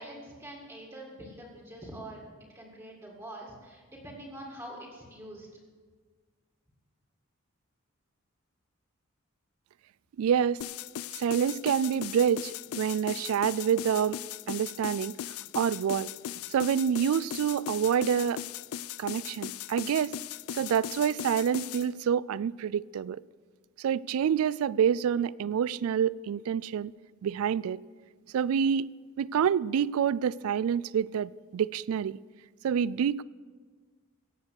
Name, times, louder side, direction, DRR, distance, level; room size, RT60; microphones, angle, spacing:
voice 1, 0.0-2.2 2.5-5.5, right 1 dB, 15° right, 2.0 m, -44 dB
voice 2, 10.2-10.6 11.2-14.2 14.5-15.1 15.5-16.1 16.5-18.4 19.0-20.2 20.5-23.2 23.8-26.9 27.2-27.8 28.3-28.9 29.2-32.2 32.6-33.2, right 8 dB, 80° right, 0.3 m, -27 dB
sound 1, 10.6-21.9, left 11 dB, 80° left, 0.3 m, -38 dB
17.0 x 7.2 x 6.4 m
head